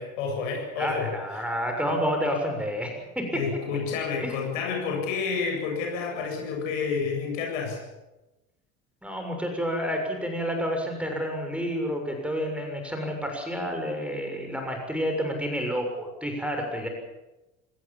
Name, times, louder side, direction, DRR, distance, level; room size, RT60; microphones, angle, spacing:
voice 1, 0.0-1.5 3.3-7.8, left 5 dB, 65° left, 2 dB, 8.0 m, -30 dB
voice 2, 0.8-3.4 4.2-4.4 9.0-16.9, equal, 5° right, 3 dB, 6.8 m, -29 dB
26.0 x 19.0 x 7.5 m, 1.0 s
figure-of-eight pair, 65°, 41 cm